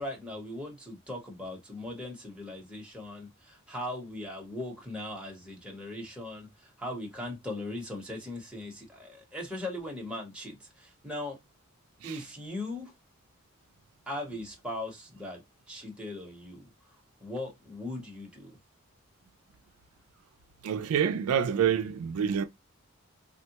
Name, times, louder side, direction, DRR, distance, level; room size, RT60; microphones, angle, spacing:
voice 1, 0.0-11.4 12.0-12.9 14.1-15.4 15.7-16.7 17.2-18.6, left 1 dB, 5° right, 0.9 m, -39 dB
voice 2, 20.6-22.4, right 8 dB, 80° right, 0.3 m, -27 dB
3.5 x 2.2 x 2.8 m
head